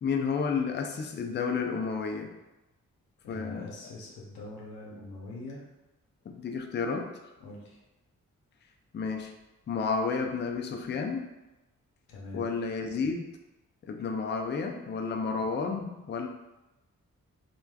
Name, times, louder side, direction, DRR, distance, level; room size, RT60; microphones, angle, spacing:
voice 1, 0.0-2.4 3.3-3.7 6.3-7.2 8.9-9.3 9.7-11.3 12.3-13.3 13.8-16.3, left 5 dB, 30° left, 3 dB, 0.4 m, -31 dB
voice 2, 3.2-5.6 7.4-7.8 12.1-12.5, left 2 dB, 90° left, -3 dB, 0.7 m, -43 dB
3.2 x 2.3 x 2.2 m, 1.0 s
supercardioid pair, 40°, 35 cm